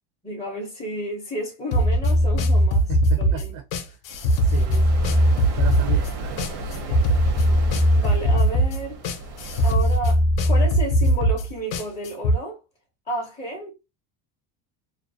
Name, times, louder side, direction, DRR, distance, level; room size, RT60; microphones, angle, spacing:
voice 1, 0.2-2.9 3.2-3.5 6.9-7.0 8.0-9.0 9.6-12.6 13.1-13.7, right 1 dB, 15° left, 0.5 m, -31 dB
sound 1, 1.7-12.4, equal, 70° left, 0.6 m, -20 dB
voice 2, 2.9-4.0 4.4-4.9 5.6-6.9, right 10 dB, 45° right, 0.4 m, -36 dB
sound 2, 4.1-9.8, right 2 dB, 85° right, 0.9 m, -34 dB
2.4 x 2.1 x 2.5 m
cardioid pair, 150°, 47 cm